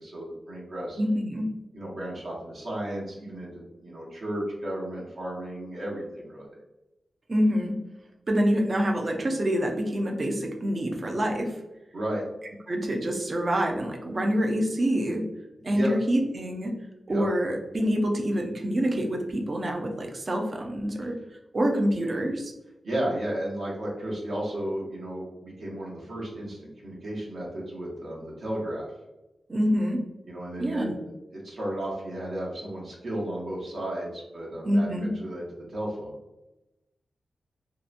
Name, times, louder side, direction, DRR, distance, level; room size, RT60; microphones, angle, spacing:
voice 1, 0.0-1.0 1.7-3.5 3.8-6.5 11.9-12.2 15.6-15.9 17.1-17.3 22.8-28.9 30.3-30.9 31.3-35.4 35.7-36.1, right 1 dB, 65° right, -5 dB, 0.8 m, -33 dB
voice 2, 1.0-1.5 7.3-7.7 8.3-11.6 12.7-15.2 15.6-16.7 17.1-21.2 21.5-22.5 29.5-30.0 30.6-31.0 34.6-35.1, equal, 35° right, 1 dB, 0.4 m, -26 dB
2.7 x 2.1 x 2.4 m, 0.98 s
wide cardioid pair, 170°, 0 cm